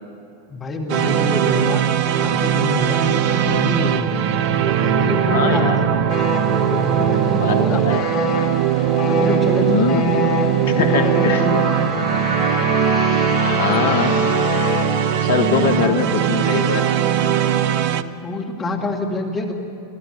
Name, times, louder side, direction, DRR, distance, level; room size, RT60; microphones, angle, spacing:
voice 1, 0.5-1.8 2.2-4.1 4.6-6.1 6.5-8.2 9.1-10.2 10.6-11.9 15.5-16.0 18.0-19.5, left 2 dB, 20° left, 1 dB, 2.1 m, -26 dB
sound 1, 0.9-18.0, right 9 dB, 45° right, 0.7 m, -20 dB
voice 2, 5.2-5.8 7.3-8.1 9.7-10.1 10.8-11.5 13.4-14.2 15.2-16.9, left 5 dB, 60° left, 7 dB, 1.4 m, -22 dB
sound 2, 6.1-14.8, left 4 dB, 45° left, 2.8 m, -27 dB
23.5 x 14.5 x 9.4 m, 2.6 s
figure-of-eight pair, 90°, 0 cm